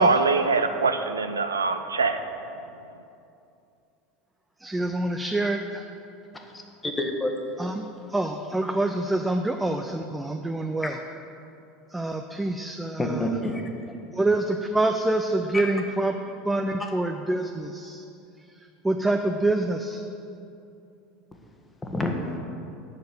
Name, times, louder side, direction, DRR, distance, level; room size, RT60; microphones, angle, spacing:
voice 1, 0.0-2.2, right 4 dB, 80° right, 8 dB, 0.4 m, -23 dB
voice 2, 4.6-5.9 7.6-11.0 11.9-13.3 14.1-16.1 16.4-18.0 18.5-20.0, right 2 dB, 10° right, 5 dB, 0.5 m, -26 dB
voice 3, 6.5-7.3 13.0-13.9 15.5-15.7 21.8-22.1, left 1 dB, 15° left, 2 dB, 1.3 m, -28 dB
8.0 x 6.5 x 7.6 m, 2.7 s
figure-of-eight pair, 75°, 0 cm